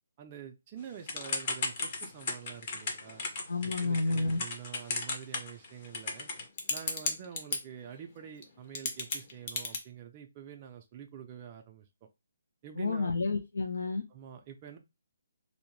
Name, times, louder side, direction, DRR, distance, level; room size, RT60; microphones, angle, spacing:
voice 1, 0.2-3.2 3.8-6.3 6.7-11.9 12.6-13.1 14.1-14.8, right 8 dB, 25° right, 4 dB, 0.3 m, -47 dB
Typing / Telephone, 1.1-7.6 8.4-8.5 8.7-9.8, left 3 dB, 35° left, 0.6 m, -34 dB
voice 2, 3.5-4.4 12.8-14.0, left 3 dB, 85° left, 4 dB, 0.4 m, -30 dB
2.6 x 2.0 x 3.0 m, 0.23 s
hypercardioid pair, 160°, 0 cm